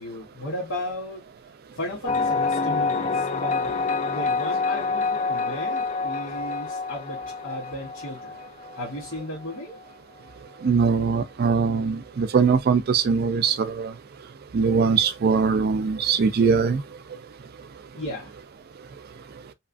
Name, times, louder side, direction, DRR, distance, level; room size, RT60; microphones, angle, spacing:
voice 1, 0.0-1.3 1.7-8.4 8.7-9.8 17.9-18.4, left 1 dB, 70° left, 1.1 m, -35 dB
sound 1, 2.1-9.6, left 4 dB, 35° left, 0.3 m, -27 dB
voice 2, 10.6-13.9 14.5-16.8, right 5 dB, 45° right, 0.4 m, -21 dB
2.9 x 2.4 x 2.4 m
head